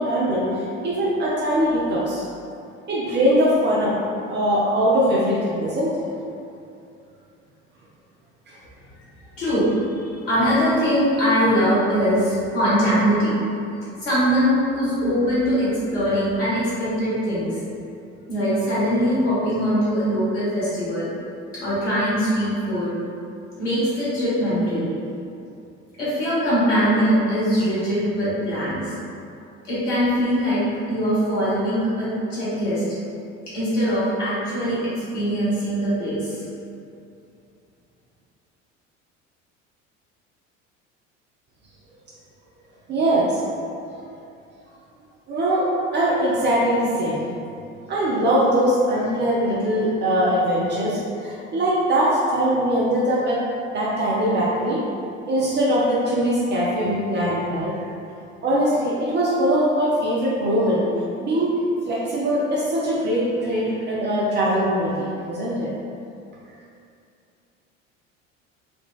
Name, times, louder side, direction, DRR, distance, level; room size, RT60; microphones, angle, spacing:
voice 1, 0.0-2.2 2.9-3.9 4.3-6.1 8.5-8.6 42.9-43.4 45.3-45.7 45.9-47.2 47.9-53.4 53.7-54.8 55.3-57.8 58.4-60.8 61.2-61.5 61.9-65.7, equal, 30° right, -6 dB, 0.5 m, -21 dB
voice 2, 9.4-9.7 10.3-13.4 14.0-17.6 18.3-21.1 21.5-22.9 23.6-25.0 26.0-28.9 29.6-32.8 33.5-36.4, equal, 65° left, -11 dB, 1.4 m, -22 dB
3.6 x 2.2 x 2.3 m, 2.6 s
figure-of-eight pair, 60°, 38 cm